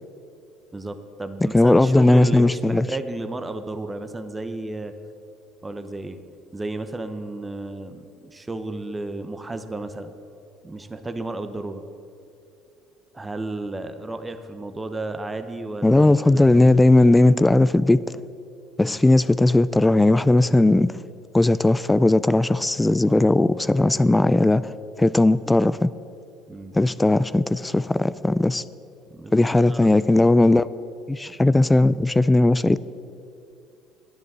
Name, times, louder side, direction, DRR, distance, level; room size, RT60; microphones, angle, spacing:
voice 1, 0.7-4.9 5.6-6.2 6.5-10.1 10.6-11.9 13.1-16.6 18.8-19.0 23.1-23.5 26.5-26.8 29.1-29.9, right 2 dB, 15° right, 9 dB, 0.9 m, -33 dB
voice 2, 1.5-2.9 15.8-18.0 18.8-21.0 21.3-24.7 25.0-25.9 26.7-28.6 29.3-30.7 31.1-32.8, left 2 dB, 10° left, 17 dB, 0.3 m, -17 dB
10.5 x 9.7 x 7.5 m, 2.5 s
supercardioid pair, 90°, 0 cm